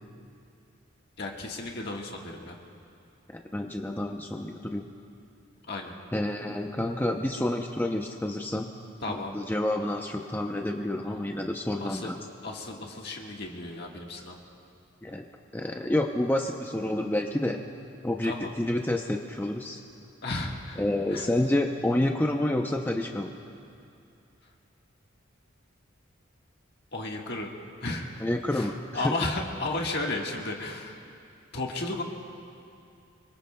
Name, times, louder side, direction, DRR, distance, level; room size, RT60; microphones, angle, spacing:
voice 1, 1.2-2.6 5.7-5.9 9.0-9.3 11.8-12.1 12.4-14.4 18.2-18.5 20.2-20.8 21.1-21.3 26.9-27.5 27.8-28.2 28.5-31.0 31.5-32.0, left 2 dB, 55° left, 0 dB, 1.6 m, -34 dB
voice 2, 3.3-4.9 6.1-8.7 9.1-12.2 15.0-15.3 15.5-17.6 18.0-19.8 20.8-23.3 28.2-29.1, left 1 dB, 10° left, 2 dB, 0.6 m, -29 dB
27.0 x 24.0 x 2.3 m, 2.5 s
head